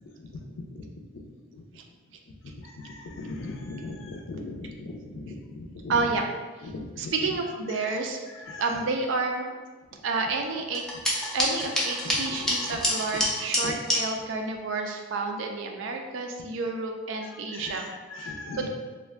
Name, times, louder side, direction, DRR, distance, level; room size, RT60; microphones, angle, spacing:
voice 1, 0.7-1.0 1.5-1.6 2.4-6.1 6.6-7.3 7.7-8.0 8.3-8.8 12.4-12.8 13.1-13.2 13.6-13.8 17.2-18.7, left 2 dB, 75° left, 2 dB, 0.4 m, -39 dB
voice 2, 5.9-6.2 7.0-8.2 8.6-9.5 10.0-10.9 11.3-17.9 18.2-18.3 18.6-18.7, right 3 dB, 70° right, 3 dB, 0.4 m, -30 dB
sound 1, 10.7-14.0, equal, 5° left, 0.4 m, -27 dB
2.4 x 2.1 x 3.4 m, 1.4 s
head